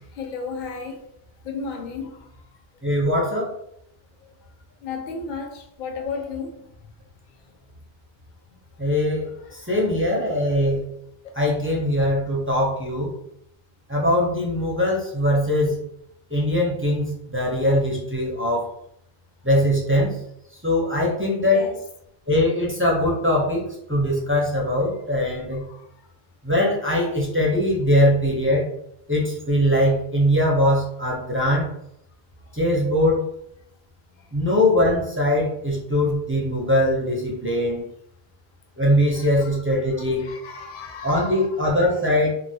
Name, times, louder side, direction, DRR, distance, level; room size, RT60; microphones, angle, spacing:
voice 1, 0.2-1.0 1.4-2.2 4.8-6.6 9.6-9.7 21.5-21.8 25.7-25.8 39.2-39.3 40.2-41.8, left 4 dB, 55° left, 2 dB, 0.7 m, -33 dB
voice 2, 2.8-3.5 8.8-10.8 11.4-13.1 13.9-15.8 16.3-18.7 19.4-20.2 20.6-21.6 22.3-25.6 26.4-28.6 29.1-31.7 32.5-33.2 34.3-37.9 38.8-40.2 41.0-42.3, left 1 dB, 15° right, -4 dB, 0.4 m, -21 dB
2.9 x 2.5 x 2.7 m, 0.76 s
omnidirectional pair, 1.0 m